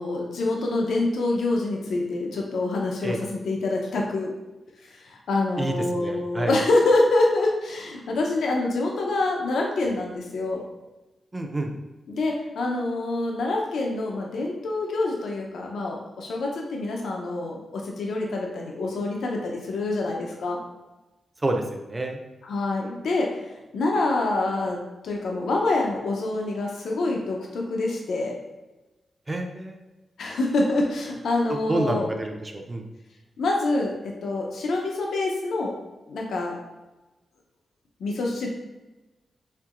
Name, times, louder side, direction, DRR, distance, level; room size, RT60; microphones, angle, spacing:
voice 1, 0.0-4.3 5.0-10.6 12.1-20.6 22.4-23.4 23.7-28.4 30.2-32.1 33.4-35.7 36.1-36.6 38.0-38.5, left 2 dB, 85° left, 0 dB, 0.6 m, -26 dB
voice 2, 5.6-6.6 11.3-11.7 21.4-22.2 29.3-29.8 31.5-32.8, right 2 dB, 20° right, 4 dB, 0.4 m, -28 dB
4.4 x 3.6 x 2.4 m, 1.1 s
wide cardioid pair, 140°, 0 cm